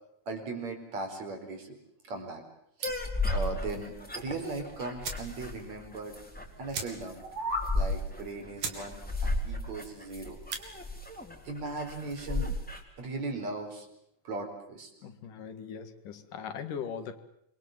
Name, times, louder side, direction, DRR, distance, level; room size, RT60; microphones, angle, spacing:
voice 1, 0.3-1.8 2.1-2.4 3.3-6.1 6.6-7.2 7.7-10.4 11.5-12.5 13.0-13.9 14.2-14.9, right 3 dB, 60° right, 4 dB, 5.8 m, -38 dB
sound 1, 2.8-12.8, left 2 dB, 5° left, 3.6 m, -34 dB
sound 2, 2.8-3.2 4.5-4.6 5.0-5.3 5.7-5.8 6.0-6.2 6.7-7.3 7.6-7.7 8.2-8.3 8.6-8.9 9.2-9.6 10.3-10.7, right 6 dB, 85° right, 4.6 m, -38 dB
sound 3, 7.1-7.8, equal, 25° right, 4.9 m, -34 dB
voice 2, 15.0-17.2, left 7 dB, 85° left, 9 dB, 3.5 m, -40 dB
26.5 x 24.5 x 7.7 m, 0.74 s
omnidirectional pair, 3.6 m